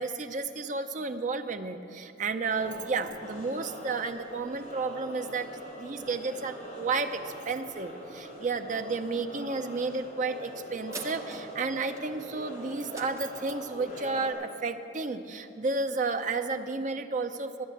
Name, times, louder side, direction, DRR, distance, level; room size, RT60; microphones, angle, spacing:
voice 1, 0.0-17.6, right 4 dB, 40° right, 8 dB, 0.6 m, -32 dB
sound 1, 2.5-14.3, equal, 45° left, 2.7 m, -43 dB
sound 2, 10.9-15.7 16.2-16.3, right 1 dB, 15° right, 1.0 m, -48 dB
12.0 x 9.3 x 7.8 m, 2.9 s
head